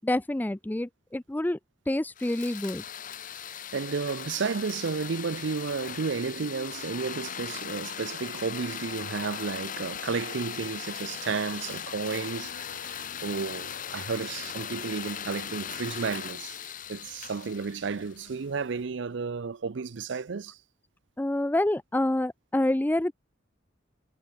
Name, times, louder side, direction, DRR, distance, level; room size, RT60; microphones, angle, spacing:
voice 1, 0.0-1.6 1.9-2.8 21.2-23.1, left 1 dB, 10° left, 0.4 m, -27 dB
sound 1, 2.2-18.3, left 9 dB, 45° left, 0.9 m, -39 dB
voice 2, 3.5-16.6 16.9-20.6, right 5 dB, 70° right, 0.6 m, -32 dB
Insect, 11.7-18.9, left 3 dB, 85° left, 1.6 m, -55 dB
head